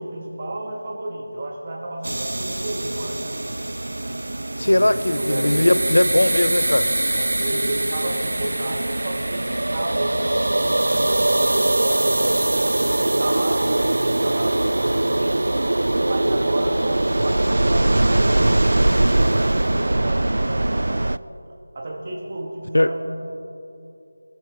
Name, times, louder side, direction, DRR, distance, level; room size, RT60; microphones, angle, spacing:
voice 1, 0.0-3.4 4.5-5.8 7.2-12.7 13.0-15.4 16.0-19.0 19.3-21.2 21.7-23.0, right 1 dB, 35° right, -1 dB, 2.2 m, -31 dB
sound 1, 2.0-21.2, right 1 dB, 80° right, 0.3 m, -22 dB
voice 2, 4.6-6.9 22.7-22.9, left 1 dB, 90° left, 13 dB, 0.8 m, -19 dB
25.0 x 13.5 x 3.8 m, 2.8 s
figure-of-eight pair, 170°, 0 cm